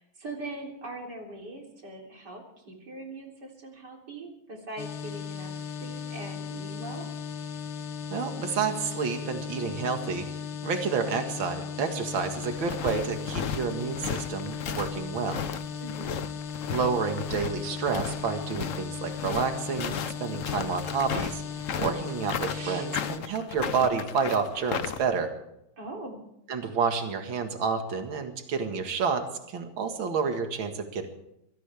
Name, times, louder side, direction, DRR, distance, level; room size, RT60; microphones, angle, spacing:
voice 1, 0.0-5.5 5.8-7.1 15.8-16.2 22.4-22.9 25.8-26.2, right 2 dB, 55° right, 0 dB, 4.1 m, -41 dB
sound 1, 4.8-23.2, left 6 dB, 90° left, 2.2 m, -37 dB
voice 2, 8.1-10.3 10.6-15.4 16.7-21.4 21.8-25.3 26.5-31.1, right 5 dB, 70° right, 5 dB, 2.5 m, -29 dB
sound 2, 11.9-25.1, left 7 dB, 55° left, 0.9 m, -35 dB
23.0 x 17.5 x 3.5 m, 0.79 s
omnidirectional pair, 2.3 m